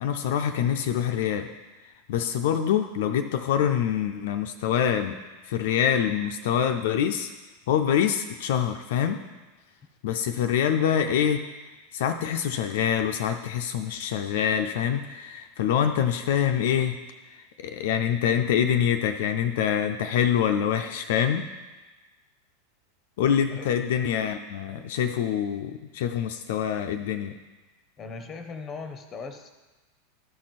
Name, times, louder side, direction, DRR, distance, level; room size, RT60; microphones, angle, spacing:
voice 1, 0.0-1.5 2.1-5.2 5.4-7.3 7.7-9.2 10.0-11.4 11.9-17.0 17.3-21.5 23.2-27.3, left 9 dB, 60° left, 6 dB, 0.5 m, -25 dB
voice 2, 28.0-29.5, left 4 dB, 25° left, 8 dB, 0.8 m, -38 dB
12.5 x 4.4 x 4.2 m, 1.2 s
figure-of-eight pair, 85°, 0 cm